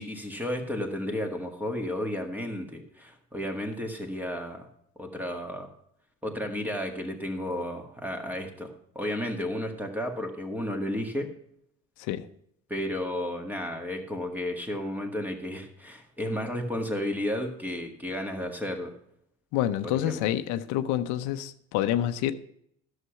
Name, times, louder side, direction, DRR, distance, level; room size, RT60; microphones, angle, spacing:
voice 1, 0.0-4.7 5.0-5.7 6.2-11.3 12.7-18.9 19.9-20.3, left 1 dB, 5° right, 1.8 m, -33 dB
voice 2, 19.5-22.3, left 12 dB, 85° left, 0.7 m, -28 dB
11.5 x 6.7 x 5.8 m
cardioid pair, 125°, 29 cm